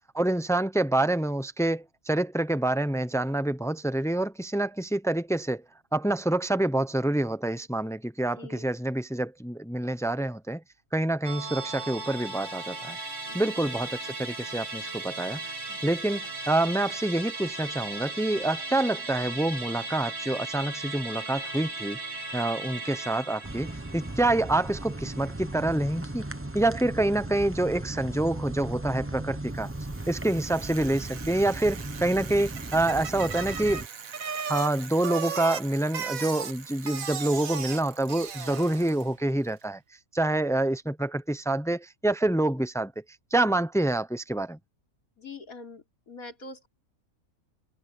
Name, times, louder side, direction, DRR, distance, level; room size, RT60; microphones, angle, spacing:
voice 1, 0.1-5.6 5.9-10.6 10.9-13.0 13.3-15.5 15.8-22.0 22.3-26.3 26.5-29.7 30.1-33.8 34.5-39.8 40.1-42.9 43.3-44.6, right 1 dB, 5° left, 0.4 m, -27 dB
voice 2, 8.4-8.7 13.3-13.8 45.2-46.7, left 3 dB, 85° left, 3.9 m, -45 dB
Musical instrument, 11.2-25.9 26.2-26.3, right 2 dB, 50° right, 2.3 m, -37 dB
sound 1, 23.4-33.9, right 2 dB, 10° right, 0.9 m, -37 dB
Bicycle, 29.7-39.2, right 7 dB, 75° right, 1.7 m, -37 dB
omnidirectional pair, 1.5 m